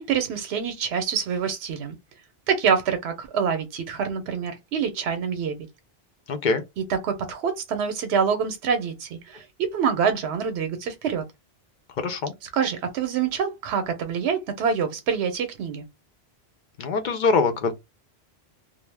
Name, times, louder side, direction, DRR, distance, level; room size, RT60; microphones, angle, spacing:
voice 1, 0.0-2.0 2.5-5.6 6.8-11.2 12.5-15.9, right 6 dB, 80° right, 0.8 m, -26 dB
voice 2, 6.3-6.6 12.0-12.3 16.8-17.7, left 4 dB, 55° left, 0.6 m, -23 dB
2.3 x 2.0 x 3.2 m
omnidirectional pair, 1.1 m